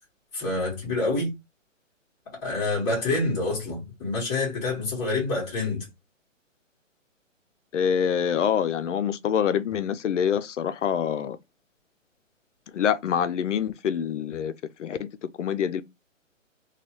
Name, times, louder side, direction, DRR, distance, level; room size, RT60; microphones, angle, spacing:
voice 1, 0.3-1.3 2.4-5.9, left 2 dB, 15° left, 1.6 m, -27 dB
voice 2, 7.7-11.4 12.7-14.5 14.8-15.1 15.4-15.8, left 8 dB, 65° left, 0.5 m, -25 dB
3.1 x 2.3 x 2.9 m
hypercardioid pair, 155°, 39 cm